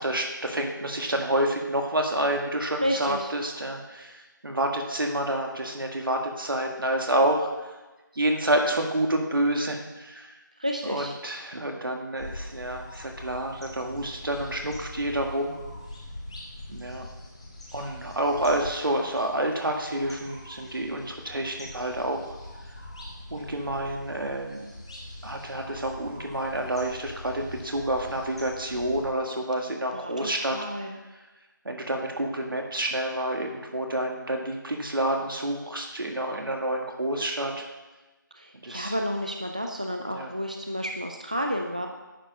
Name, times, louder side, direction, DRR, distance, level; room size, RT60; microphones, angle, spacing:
voice 1, 0.0-7.7 8.1-10.4 10.8-15.6 16.7-17.1 17.7-22.3 23.3-24.6 25.2-30.6 31.6-37.6 38.6-38.9 40.1-40.3, right 1 dB, 85° right, 2 dB, 1.8 m, -28 dB
voice 2, 2.8-3.3 10.6-11.1 29.9-31.0 38.4-41.9, equal, 20° right, 2 dB, 0.3 m, -31 dB
sound 1, 12.2-29.0, left 1 dB, 15° left, 0.9 m, -43 dB
9.9 x 4.9 x 5.3 m, 1.1 s
figure-of-eight pair, 175°, 11 cm